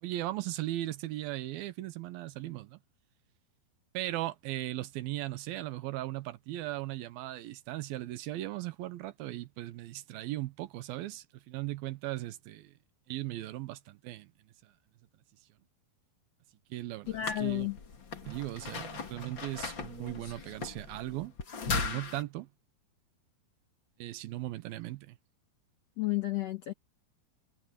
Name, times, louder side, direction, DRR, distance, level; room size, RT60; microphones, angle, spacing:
voice 1, 0.0-2.8 3.9-12.7 13.1-14.7 16.7-17.7 18.2-21.3 21.7-22.5 24.0-25.2, right 16 dB, 80° right, 2.7 m, -38 dB
voice 2, 17.1-17.8 26.0-26.7, left 14 dB, 75° left, 1.5 m, -31 dB
sound 1, 17.1-22.2, left 5 dB, 35° left, 2.3 m, -38 dB
omnidirectional pair, 4.4 m